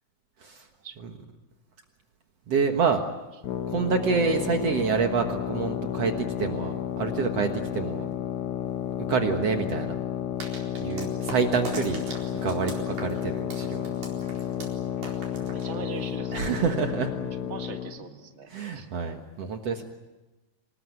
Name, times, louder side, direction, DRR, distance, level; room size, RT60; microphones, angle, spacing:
voice 1, 2.5-3.0 3.7-6.1 6.4-8.1 9.0-9.9 10.8-12.0 12.3-13.9 16.3-17.1 18.5-19.8, right 5 dB, 60° right, 5 dB, 2.4 m, -27 dB
sound 1, 3.4-17.9, left 10 dB, 70° left, 2.4 m, -32 dB
sound 2, 10.4-16.2, right 3 dB, 75° right, 5.8 m, -41 dB
sound 3, 12.8-18.7, left 1 dB, 15° left, 5.6 m, -51 dB
voice 2, 15.3-16.6 17.5-18.9, right 6 dB, 35° right, 6 dB, 1.3 m, -42 dB
27.0 x 20.0 x 9.5 m, 1.1 s
omnidirectional pair, 3.5 m